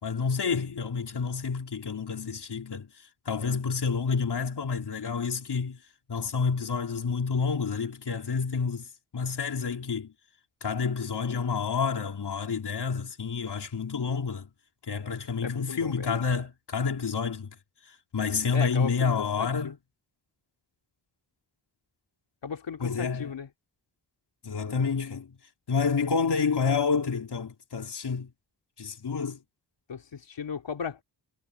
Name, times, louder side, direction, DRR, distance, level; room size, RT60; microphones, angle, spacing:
voice 1, 0.0-2.9 3.3-5.8 6.1-8.9 9.1-10.1 10.6-14.5 14.9-17.6 17.8-19.8 22.8-23.3 24.4-25.4 25.7-28.3 28.8-29.4, left 5 dB, 65° left, 3.6 m, -29 dB
voice 2, 15.4-16.1 18.5-19.7 22.4-23.5 29.9-31.0, left 6 dB, 85° left, 3.5 m, -36 dB
wide cardioid pair, 85°, 42 cm